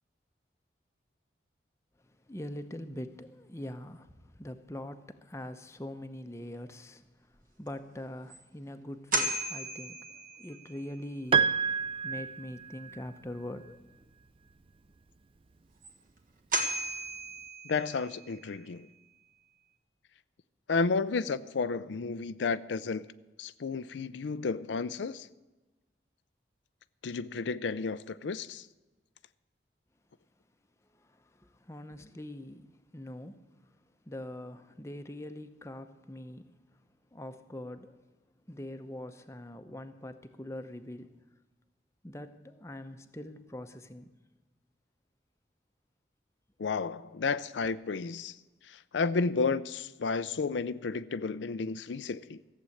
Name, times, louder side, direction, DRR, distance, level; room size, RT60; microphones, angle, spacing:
voice 1, 2.3-4.1 4.4-7.0 7.6-11.5 12.0-13.8 31.7-33.4 34.1-36.5 37.1-38.0 38.5-41.1 42.0-44.1, left 1 dB, 15° left, 0.7 m, -43 dB
sound 1, 7.7-7.8 8.3-8.4 9.1-10.7 15.8-15.9 16.5-18.2, right 1 dB, 45° right, 1.5 m, -34 dB
Piano, 11.3-13.0, right 6 dB, 30° right, 0.4 m, -28 dB
voice 2, 17.6-18.9 20.7-23.1 23.4-25.3 27.0-28.7 46.6-48.3 48.7-52.4, left 4 dB, 85° left, 0.5 m, -32 dB
15.0 x 7.7 x 8.4 m
head